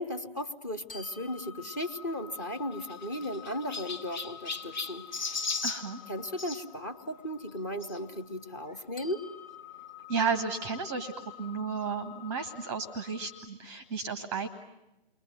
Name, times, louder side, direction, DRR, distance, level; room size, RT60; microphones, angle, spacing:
voice 1, 0.0-5.3 6.1-9.2, left 1 dB, 20° left, 7 dB, 0.9 m, -36 dB
sound 1, 0.9-13.5, left 9 dB, 65° left, 2.3 m, -49 dB
Chirp tweet, 2.3-6.6 7.8-8.0 8.7-8.8 9.0-9.1 10.4-10.5, left 4 dB, 50° left, 1.1 m, -37 dB
voice 2, 5.6-6.0 10.1-14.5, right 5 dB, 10° right, 12 dB, 0.9 m, -33 dB
29.0 x 22.5 x 9.0 m, 0.94 s
figure-of-eight pair, 145°, 30 cm